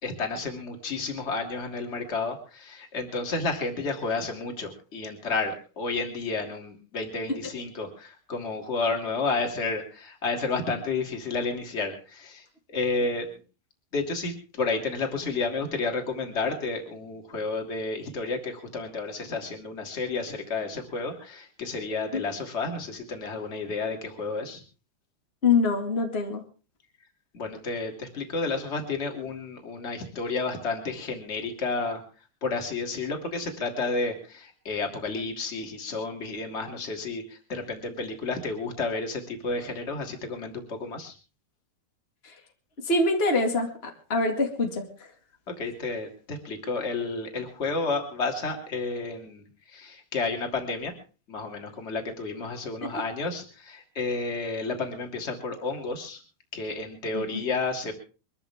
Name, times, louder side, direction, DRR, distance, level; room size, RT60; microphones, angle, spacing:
voice 1, 0.0-13.3 13.9-24.6 27.3-32.0 32.4-41.1 45.5-50.9 51.3-56.2 56.5-57.9, left 3 dB, 20° left, 3 dB, 2.4 m, -31 dB
voice 2, 25.4-26.4 42.8-44.8 52.8-52.9 57.1-57.2, left 3 dB, 45° left, 3 dB, 0.7 m, -24 dB
23.5 x 14.0 x 3.6 m, 0.35 s
omnidirectional pair, 5.2 m